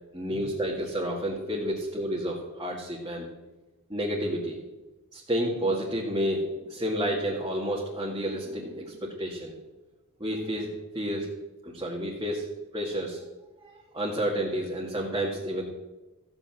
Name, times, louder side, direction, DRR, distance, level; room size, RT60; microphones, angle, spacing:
voice 1, 0.1-3.3 3.9-4.6 5.1-9.5 10.2-10.7 10.9-11.3 11.6-15.6, equal, 20° right, -4 dB, 2.0 m, -30 dB
14.5 x 8.7 x 7.7 m, 1.1 s
head